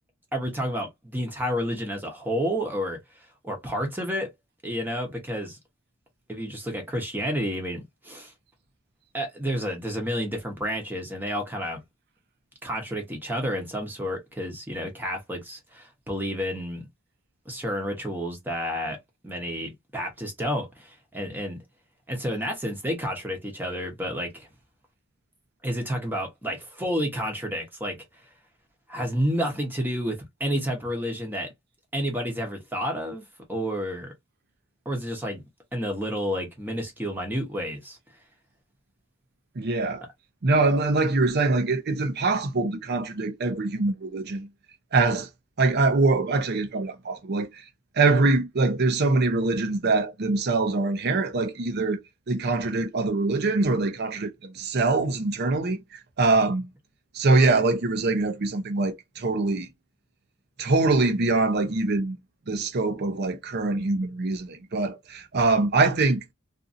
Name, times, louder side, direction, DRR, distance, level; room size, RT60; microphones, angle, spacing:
voice 1, 0.3-3.0 3.4-4.3 4.6-5.6 6.3-8.3 9.1-11.8 12.6-16.8 17.5-19.0 19.2-21.6 22.1-24.5 25.6-28.0 28.9-31.5 31.9-33.2 33.5-34.1 34.8-35.4 35.7-38.0, equal, 10° right, 0.9 m, -30 dB
voice 2, 39.6-40.1 40.4-44.5 44.9-45.3 45.6-47.6 48.0-52.0 52.3-56.7 57.1-59.7 60.6-62.2 62.5-66.2, right 3 dB, 50° right, 0.6 m, -23 dB
2.6 x 2.6 x 2.5 m
head